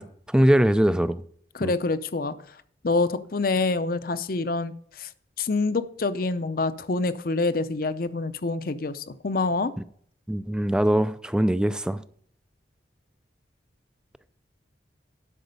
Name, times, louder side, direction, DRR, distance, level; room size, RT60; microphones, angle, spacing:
voice 1, 0.3-1.2 1.6-1.7 10.3-12.0, right 1 dB, 5° right, 0.3 m, -21 dB
voice 2, 1.5-2.3 2.8-5.1 5.4-9.7, left 3 dB, 50° left, 0.6 m, -26 dB
12.0 x 6.0 x 5.3 m
head